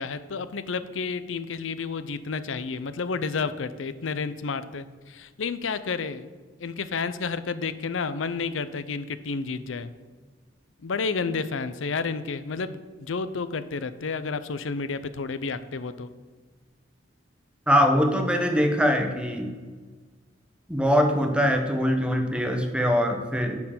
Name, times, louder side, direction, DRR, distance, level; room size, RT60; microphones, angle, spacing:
voice 1, 0.0-6.3 6.6-9.9 10.8-16.1, left 4 dB, 90° left, 13 dB, 0.6 m, -31 dB
voice 2, 17.7-19.5 20.7-23.6, equal, 5° right, 4 dB, 1.0 m, -22 dB
9.5 x 4.6 x 7.4 m, 1.4 s
head